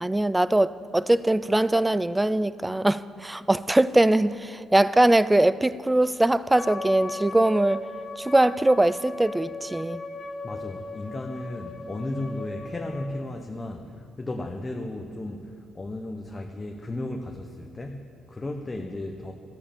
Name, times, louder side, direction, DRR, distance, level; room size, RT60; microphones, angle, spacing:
voice 1, 0.0-7.8 8.2-10.0, right 1 dB, 10° right, 0.3 m, -22 dB
Wind instrument woodwind instrument, 6.5-13.1, left 2 dB, 45° left, 1.3 m, -37 dB
voice 2, 10.4-19.3, left 2 dB, 25° left, 0.9 m, -35 dB
13.5 x 8.8 x 7.0 m
cardioid pair, 90°, 0 cm